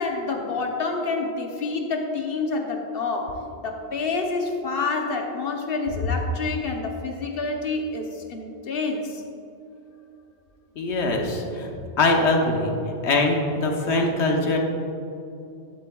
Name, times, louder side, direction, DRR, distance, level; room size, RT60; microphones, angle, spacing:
voice 1, 0.0-9.2, left 3 dB, 60° left, 3 dB, 1.0 m, -28 dB
voice 2, 10.8-11.7 12.0-12.7 13.0-14.6, left 2 dB, 85° left, 2 dB, 1.3 m, -22 dB
12.0 x 7.9 x 2.3 m, 2.8 s
omnidirectional pair, 1.1 m